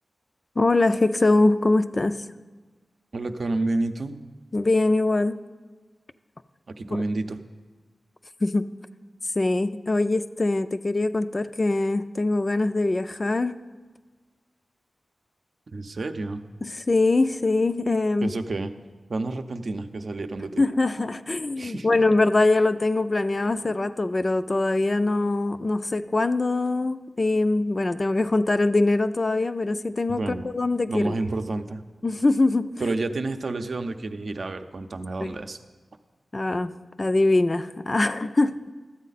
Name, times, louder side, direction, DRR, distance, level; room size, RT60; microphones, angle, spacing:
voice 1, 0.6-2.3 4.5-5.4 8.4-8.7 9.4-13.6 16.6-18.3 20.6-31.2 32.0-32.9 35.2-35.3 36.3-38.7, left 2 dB, 40° left, 11 dB, 0.4 m, -23 dB
voice 2, 3.1-4.2 6.7-7.4 15.7-16.4 18.2-18.7 19.1-20.6 21.5-21.9 30.1-30.5 30.9-31.8 32.8-35.6, right 2 dB, 65° right, 7 dB, 0.6 m, -29 dB
13.0 x 8.3 x 4.1 m, 1.3 s
wide cardioid pair, 70°, 0 cm